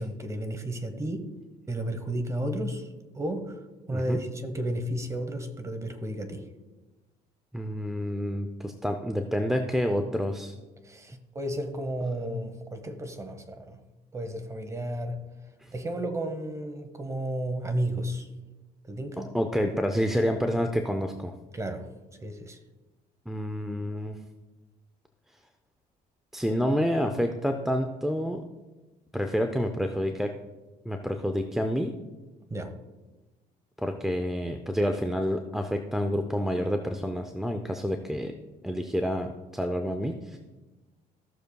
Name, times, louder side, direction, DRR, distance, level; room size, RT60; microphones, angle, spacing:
voice 1, 0.0-1.4 1.7-2.9 3.1-3.6 3.9-6.5 10.8-13.8 14.1-15.3 15.7-18.3 18.9-19.4 21.5-22.6 32.5-32.8, right 1 dB, 20° right, 7 dB, 1.1 m, -33 dB
voice 2, 3.9-4.2 7.5-10.5 15.6-15.7 19.3-21.3 23.3-24.2 26.3-28.4 29.1-30.3 30.9-31.9 33.8-38.3 38.6-40.4, equal, ahead, 5 dB, 0.5 m, -28 dB
16.5 x 6.6 x 2.3 m, 1.2 s
cardioid pair, 110°, 17 cm